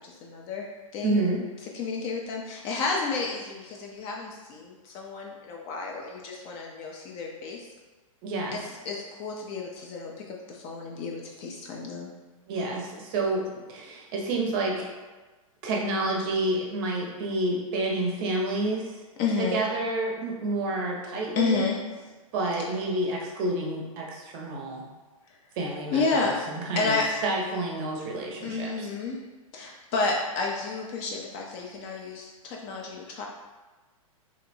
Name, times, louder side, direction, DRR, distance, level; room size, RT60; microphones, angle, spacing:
voice 1, 0.0-1.2 1.7-7.6 8.5-12.1 19.2-19.6 21.4-21.8 25.9-26.4 26.8-27.1 28.4-29.2 29.5-33.3, left 4 dB, 30° left, 0 dB, 0.4 m, -31 dB
voice 2, 1.0-1.4 8.2-8.7 12.5-14.9 15.6-19.0 19.4-21.6 22.3-24.8 25.6-28.9, right 2 dB, 40° right, -1 dB, 0.6 m, -29 dB
2.7 x 2.1 x 2.6 m, 1.3 s
hypercardioid pair, 120°, 18 cm